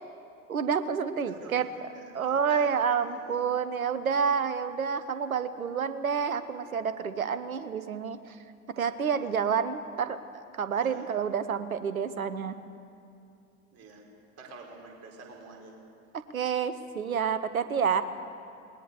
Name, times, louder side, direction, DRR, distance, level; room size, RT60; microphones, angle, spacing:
voice 1, 0.5-1.7 2.1-8.4 8.7-12.6 16.3-18.0, right 6 dB, 75° right, 12 dB, 1.1 m, -29 dB
voice 2, 1.1-3.4 9.2-9.4 10.7-11.1 13.7-14.0 14.4-15.8, right 3 dB, 35° right, 0 dB, 4.6 m, -48 dB
20.5 x 19.5 x 6.9 m, 2.5 s
figure-of-eight pair, 80°, 42 cm